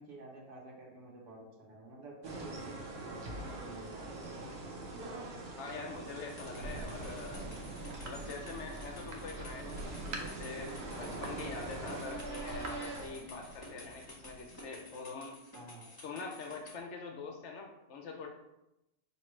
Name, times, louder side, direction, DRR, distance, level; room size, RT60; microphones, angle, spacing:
voice 1, 0.0-4.1 11.0-11.4 15.5-15.9, right 2 dB, 85° right, -2 dB, 1.4 m, -50 dB
sound 1, 2.2-13.1, right 2 dB, 50° right, 0.9 m, -44 dB
voice 2, 5.5-7.5 8.0-15.4 16.0-18.3, left 4 dB, 70° left, 3 dB, 0.7 m, -44 dB
sound 2, 6.3-16.8, left 1 dB, 25° left, 0.4 m, -53 dB
Thunder, 6.6-14.9, right 2 dB, 65° right, 1.0 m, -45 dB
5.1 x 2.7 x 3.1 m, 0.91 s
omnidirectional pair, 1.7 m